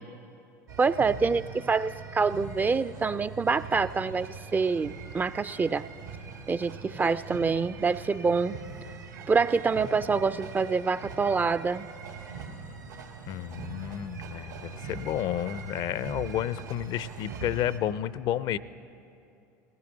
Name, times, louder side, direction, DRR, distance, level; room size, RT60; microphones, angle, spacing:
sound 1, 0.7-17.8, right 5 dB, 85° right, 1.7 m, -42 dB
voice 1, 0.8-5.9 6.5-8.6 9.3-11.9, right 4 dB, 20° right, 14 dB, 0.3 m, -26 dB
voice 2, 13.3-18.6, left 11 dB, 50° left, 17 dB, 0.4 m, -31 dB
20.0 x 16.5 x 3.9 m, 2.6 s
hypercardioid pair, 80°, 9 cm